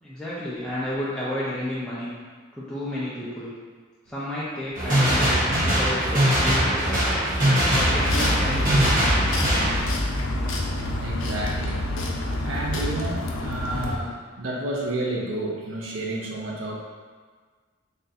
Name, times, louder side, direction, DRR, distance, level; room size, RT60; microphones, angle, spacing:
voice 1, 0.0-2.1 2.5-3.5 4.1-5.4 5.6-7.0 7.7-9.4, left 1 dB, 5° left, -10 dB, 0.5 m, -32 dB
sound 1, 4.7-9.8, equal, 45° right, 1.3 m, -21 dB
voice 2, 5.5-5.8 11.0-11.9 12.4-16.8, right 1 dB, 75° right, -2 dB, 0.6 m, -31 dB
sound 2, 7.7-14.0, left 1 dB, 75° left, 0.5 m, -27 dB
3.3 x 2.6 x 4.1 m, 1.5 s
head